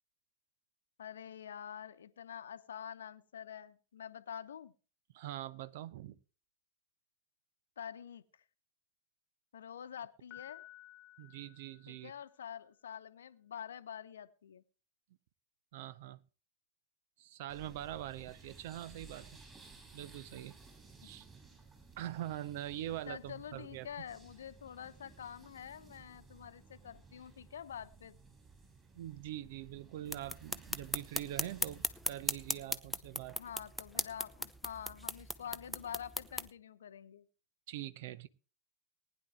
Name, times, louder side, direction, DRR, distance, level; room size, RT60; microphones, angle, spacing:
voice 1, 1.0-4.7 7.8-8.2 9.5-10.6 11.9-14.6 21.0-21.1 23.1-28.2 33.4-37.3, left 9 dB, 65° left, 0.9 m, -47 dB
voice 2, 5.1-6.2 11.2-12.1 15.7-16.2 17.2-19.4 19.9-20.6 21.0-21.3 22.0-24.0 28.9-33.4 37.7-38.3, right 13 dB, 50° right, 0.7 m, -43 dB
Piano, 10.3-12.4, left 15 dB, 35° left, 1.3 m, -55 dB
sound 1, 17.5-32.6, right 4 dB, 20° right, 7.1 m, -58 dB
sound 2, 30.1-36.5, equal, ahead, 0.7 m, -38 dB
19.5 x 10.0 x 3.2 m
figure-of-eight pair, 90°, 0 cm